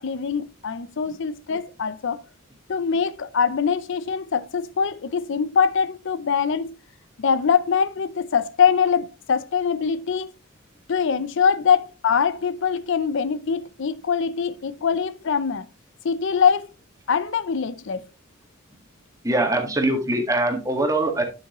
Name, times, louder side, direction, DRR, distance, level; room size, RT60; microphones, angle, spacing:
voice 1, 0.0-2.2 2.7-6.8 7.2-10.3 10.9-15.7 16.0-16.7 17.1-18.0, left 6 dB, 60° left, 0.5 m, -23 dB
voice 2, 19.2-21.2, right 2 dB, 15° right, 1.7 m, -22 dB
11.0 x 6.1 x 3.0 m
head